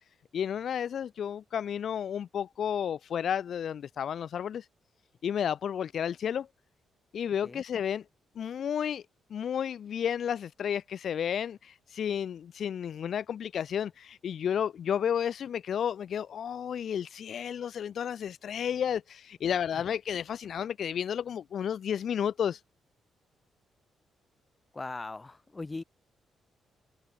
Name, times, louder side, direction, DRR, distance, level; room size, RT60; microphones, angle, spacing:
voice 1, 0.3-4.7 5.2-6.5 7.1-8.0 8.4-9.0 9.3-22.6, left 8 dB, 55° left, 0.4 m, -32 dB
voice 2, 24.7-25.8, left 3 dB, 15° left, 2.2 m, -39 dB
cardioid pair, 150°, 0 cm